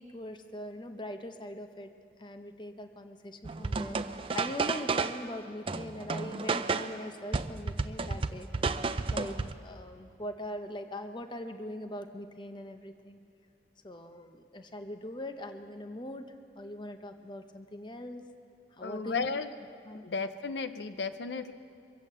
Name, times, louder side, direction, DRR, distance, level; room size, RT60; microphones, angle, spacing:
voice 1, 0.0-1.9 2.2-4.0 4.3-8.8 9.1-9.4 9.6-13.2 13.8-18.3 18.8-19.3 19.8-20.1, left 1 dB, 25° left, 7 dB, 0.7 m, -41 dB
sound 1, 3.4-5.3 5.7-7.0 7.3-9.5, right 4 dB, 30° right, 0.4 m, -32 dB
voice 2, 18.8-19.5 20.0-21.5, left 4 dB, 80° left, 11 dB, 0.5 m, -34 dB
23.5 x 8.4 x 7.4 m, 2.4 s
head